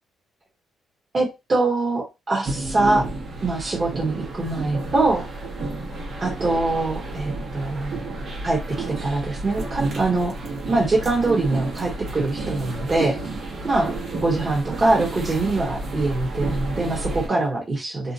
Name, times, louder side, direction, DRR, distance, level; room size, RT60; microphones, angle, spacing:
voice 1, 1.1-3.1 3.4-5.3 6.2-8.1 8.4-10.3 10.7-13.2 13.6-13.9 14.2-18.1, right 2 dB, 35° right, -3 dB, 1.2 m, -23 dB
sound 1, 2.4-17.3, right 2 dB, 60° right, 1.2 m, -31 dB
2.7 x 2.2 x 2.7 m, 0.24 s
cardioid pair, 80°, 0 cm